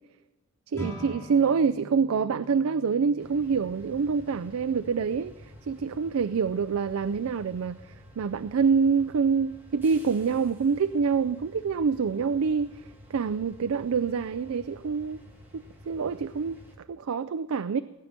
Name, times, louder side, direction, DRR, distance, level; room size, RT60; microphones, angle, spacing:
sound 1, 0.7-10.2, equal, 10° left, 2.6 m, -47 dB
voice 1, 0.7-7.8 8.2-15.2 15.5-17.8, right 5 dB, 75° right, 13 dB, 0.4 m, -26 dB
sound 2, 3.2-16.8, equal, 10° right, 2.6 m, -51 dB
18.0 x 10.0 x 5.9 m, 1.1 s
head